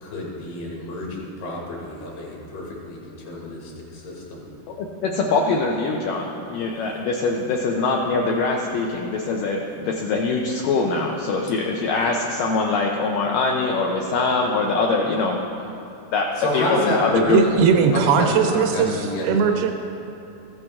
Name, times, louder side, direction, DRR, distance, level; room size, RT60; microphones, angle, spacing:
voice 1, 0.0-4.4 16.4-17.3 17.9-19.3, left 1 dB, 75° left, -4 dB, 3.9 m, -29 dB
voice 2, 4.7-15.4 16.1-16.3 16.5-17.4, left 3 dB, 90° left, 0 dB, 1.9 m, -23 dB
voice 3, 17.3-19.7, right 6 dB, 80° right, 5 dB, 2.3 m, -19 dB
14.5 x 8.1 x 3.5 m, 3.0 s
omnidirectional pair, 4.7 m